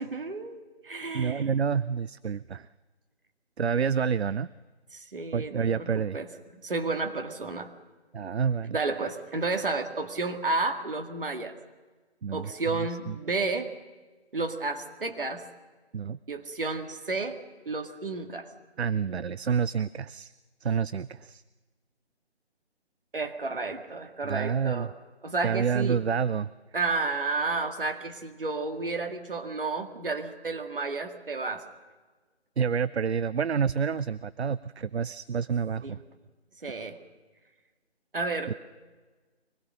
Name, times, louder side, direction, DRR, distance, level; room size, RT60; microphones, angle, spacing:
voice 1, 0.0-1.5 4.9-6.3 6.6-7.7 8.7-11.5 12.3-13.7 14.3-15.4 16.3-18.5 23.1-24.9 25.2-26.0 26.7-31.7 35.8-36.0 36.6-37.0 38.1-38.5, right 3 dB, 55° right, 5 dB, 2.1 m, -31 dB
voice 2, 1.1-2.7 3.6-4.5 5.3-6.2 8.1-8.8 12.2-13.2 15.9-16.2 18.8-20.3 20.6-21.4 24.2-24.9 25.4-26.5 32.6-36.0 38.5-38.6, right 6 dB, 75° right, 17 dB, 0.6 m, -28 dB
24.0 x 20.0 x 6.4 m, 1.3 s
figure-of-eight pair, 155°, 33 cm